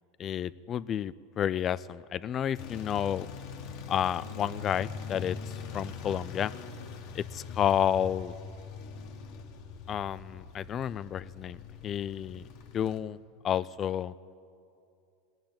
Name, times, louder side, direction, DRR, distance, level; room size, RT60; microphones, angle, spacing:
voice 1, 0.2-3.3 3.9-5.4 5.7-6.5 7.2-8.3 9.9-12.4 12.7-13.2 13.4-14.1, left 9 dB, 30° left, 19 dB, 0.3 m, -30 dB
sound 1, 2.6-13.0, left 5 dB, 55° left, 1.3 m, -42 dB
18.5 x 7.6 x 8.7 m, 2.6 s
supercardioid pair, 130°, 0 cm